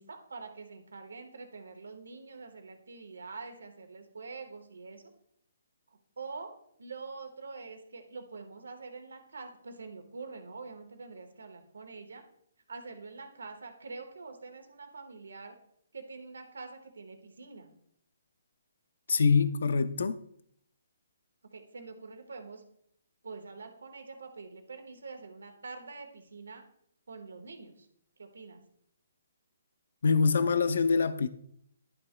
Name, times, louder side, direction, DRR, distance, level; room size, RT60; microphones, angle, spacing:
voice 1, 0.0-5.0 5.9-6.5 6.8-12.2 12.7-15.6 15.9-17.7 21.5-22.6 23.2-26.6 27.1-27.9 28.2-28.6, right 4 dB, 85° right, 1.3 m, -45 dB
voice 2, 19.1-20.2 30.0-31.3, left 5 dB, 70° left, 0.4 m, -25 dB
11.0 x 6.0 x 2.2 m
hypercardioid pair, 155°, 0 cm